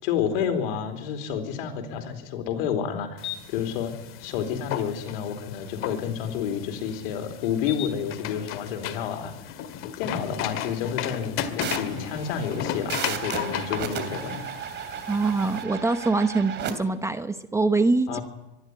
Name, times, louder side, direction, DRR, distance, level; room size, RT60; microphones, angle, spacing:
voice 1, 0.0-3.9 4.2-9.6 10.0-14.3 18.1-18.2, left 8 dB, 65° left, 7 dB, 4.1 m, -30 dB
sound 1, 3.2-15.6, left 9 dB, 45° left, 2.0 m, -35 dB
sound 2, 11.6-16.7, right 8 dB, 35° right, 3.0 m, -34 dB
voice 2, 15.1-18.2, right 3 dB, 10° right, 10 dB, 0.9 m, -24 dB
24.0 x 11.5 x 9.7 m, 0.97 s
hypercardioid pair, 115°, 30 cm